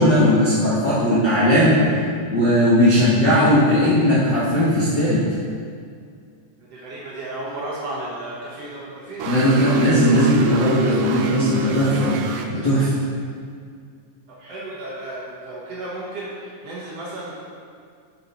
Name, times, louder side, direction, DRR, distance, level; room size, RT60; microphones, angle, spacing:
voice 1, 0.0-2.0 2.3-5.2 9.2-12.2 12.5-12.9, equal, 55° left, -10 dB, 1.2 m, -17 dB
voice 2, 6.7-9.5 14.3-17.3, right 1 dB, 60° right, -6 dB, 1.8 m, -33 dB
sound 1, 9.2-12.4, equal, 85° right, 2.2 m, -27 dB
6.7 x 6.6 x 4.2 m, 2.2 s
omnidirectional pair, 3.8 m